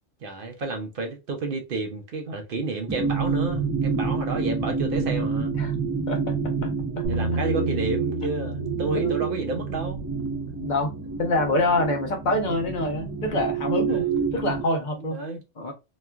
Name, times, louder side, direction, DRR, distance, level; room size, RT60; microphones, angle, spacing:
voice 1, 0.2-5.5 7.1-10.0 13.9-14.0 15.1-15.4, right 3 dB, 55° right, 0.7 m, -30 dB
sound 1, 2.9-14.6, right 5 dB, 20° right, 0.4 m, -28 dB
voice 2, 6.1-6.7 7.0-7.1 8.9-9.1 10.6-10.9 11.2-14.1 14.3-15.2 15.6-15.7, left 2 dB, 45° left, 0.8 m, -26 dB
Bass guitar, 7.0-13.3, equal, 75° right, 1.1 m, -34 dB
2.9 x 2.3 x 2.2 m
omnidirectional pair, 1.3 m